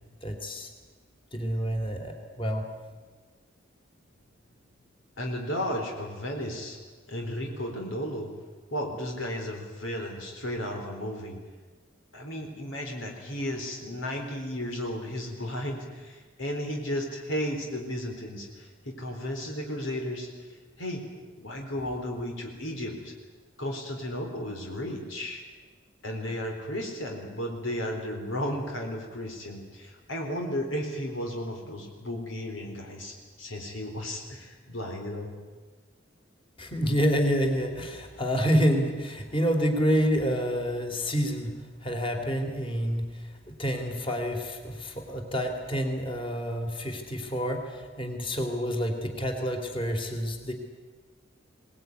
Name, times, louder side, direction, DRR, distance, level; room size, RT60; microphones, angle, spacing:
voice 1, 0.2-0.7 1.3-2.6 36.6-41.5 41.8-50.5, equal, 30° left, 3 dB, 3.1 m, -28 dB
voice 2, 5.2-6.8 7.1-8.3 8.7-11.4 12.1-20.3 20.8-21.0 21.4-23.1 23.6-25.4 26.0-35.3, equal, 85° left, 1 dB, 4.1 m, -34 dB
22.5 x 20.0 x 9.5 m, 1.4 s
head